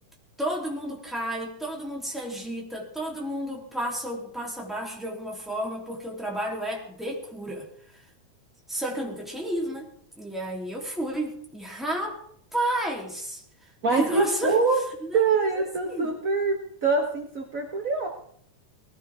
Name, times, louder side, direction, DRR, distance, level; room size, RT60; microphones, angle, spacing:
voice 1, 0.4-7.7 8.7-9.9 10.2-12.2 12.5-13.4 13.8-14.6 15.0-16.1, right 1 dB, ahead, -2 dB, 2.9 m, -32 dB
voice 2, 13.8-14.8 15.1-18.1, right 4 dB, 55° right, 2 dB, 0.9 m, -24 dB
19.0 x 16.0 x 3.6 m, 0.64 s
omnidirectional pair, 3.4 m